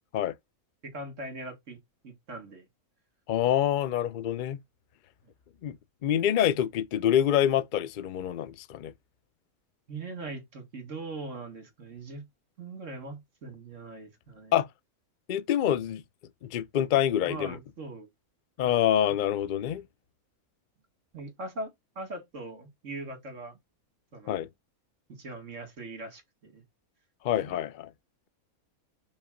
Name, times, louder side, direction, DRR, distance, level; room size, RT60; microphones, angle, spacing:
voice 1, 0.8-1.8 2.0-2.7 9.9-12.3 12.6-14.6 17.2-18.1 18.6-18.8 21.1-23.6 24.1-24.4 25.1-26.6, right 2 dB, 60° right, 2.4 m, -41 dB
voice 2, 3.3-4.6 5.6-5.8 6.0-8.9 14.5-14.7 15.3-16.0 16.4-17.6 18.6-19.8 24.3-24.5 27.2-27.9, left 10 dB, 75° left, 0.4 m, -26 dB
5.5 x 3.4 x 5.1 m
omnidirectional pair, 1.5 m